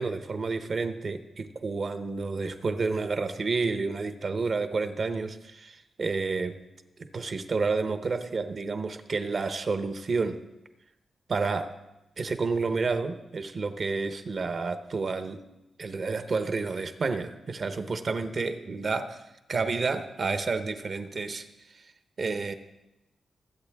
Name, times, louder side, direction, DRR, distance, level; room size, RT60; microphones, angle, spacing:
voice 1, 0.0-6.6 7.0-10.4 11.3-11.7 12.2-15.4 15.8-19.2 19.5-21.4 22.2-22.5, right 4 dB, 45° right, 9 dB, 0.9 m, -30 dB
22.0 x 8.2 x 3.5 m, 0.95 s
wide cardioid pair, 125°, 0 cm